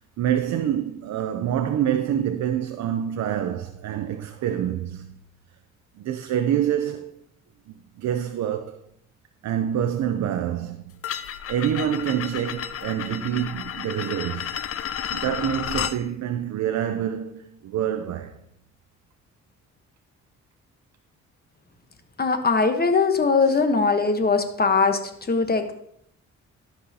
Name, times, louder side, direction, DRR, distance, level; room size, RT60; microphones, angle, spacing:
voice 1, 0.2-5.2 6.0-7.2 8.0-8.8 9.4-10.9 11.5-14.6 15.1-18.3 23.4-23.6, right 10 dB, 70° right, 0.6 m, -26 dB
sound 1, 11.0-16.0, left 9 dB, 50° left, 0.5 m, -32 dB
voice 2, 22.2-25.0 25.3-25.7, left 4 dB, 30° left, 1.1 m, -20 dB
12.5 x 5.6 x 2.8 m
cardioid pair, 80°, 30 cm